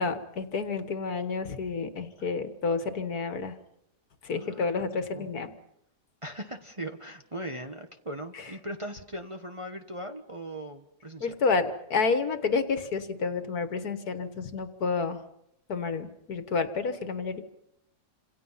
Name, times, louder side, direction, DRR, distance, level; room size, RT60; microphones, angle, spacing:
voice 1, 0.0-3.5 4.2-5.5 11.2-15.2 15.7-17.4, left 4 dB, 65° left, 9 dB, 1.9 m, -29 dB
voice 2, 4.3-5.3 6.2-11.3, right 1 dB, 20° right, 4 dB, 1.2 m, -39 dB
30.0 x 27.0 x 5.8 m, 0.85 s
omnidirectional pair, 1.8 m